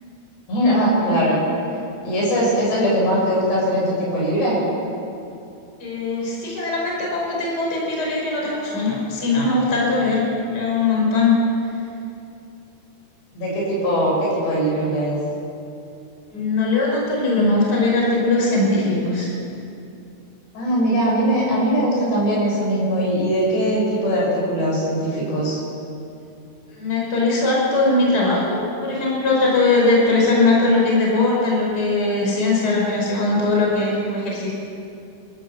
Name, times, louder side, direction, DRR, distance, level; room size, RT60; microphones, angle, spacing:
voice 1, 0.5-1.4 2.0-4.6 13.4-15.2 20.6-25.6, equal, 65° left, -5 dB, 8.7 m, -20 dB
voice 2, 5.8-11.3 16.3-19.3 21.5-21.6 26.7-34.5, left 3 dB, 20° left, -3 dB, 4.8 m, -20 dB
25.5 x 14.5 x 7.2 m, 2.6 s
omnidirectional pair, 5.2 m